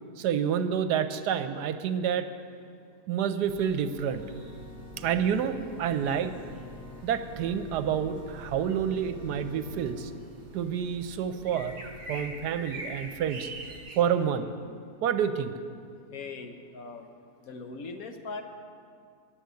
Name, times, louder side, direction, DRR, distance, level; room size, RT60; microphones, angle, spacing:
voice 1, 0.2-2.3 3.1-4.2 5.0-6.3 7.0-10.1 10.5-11.8 12.1-13.5 14.0-14.5 15.0-15.5, right 8 dB, 75° right, 10 dB, 1.2 m, -28 dB
sound 1, 3.5-14.0, right 2 dB, 45° right, 1.7 m, -45 dB
Organ, 4.2-10.0, left 1 dB, 40° left, 0.6 m, -46 dB
voice 2, 16.1-17.1 17.4-18.4, left 4 dB, 65° left, 6 dB, 1.1 m, -40 dB
10.5 x 7.7 x 8.2 m, 2.3 s
omnidirectional pair, 1.8 m